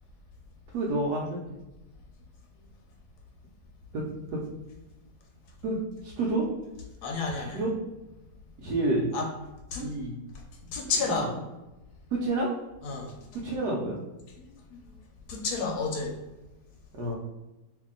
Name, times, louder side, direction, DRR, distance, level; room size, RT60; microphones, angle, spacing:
voice 1, 0.7-1.6 3.9-4.0 5.6-6.4 7.5-7.7 8.6-9.1 9.8-10.2 11.1-11.3 12.2-12.5 13.4-14.0 16.9-17.2, right 2 dB, 75° right, -3 dB, 1.2 m, -29 dB
voice 2, 7.0-7.7 9.1-9.3 9.7-9.9 10.7-11.3 12.8-13.1 14.4-15.0 15.3-16.1, left 4 dB, 70° left, 1 dB, 1.2 m, -31 dB
2.8 x 2.7 x 3.7 m, 1.0 s
omnidirectional pair, 1.9 m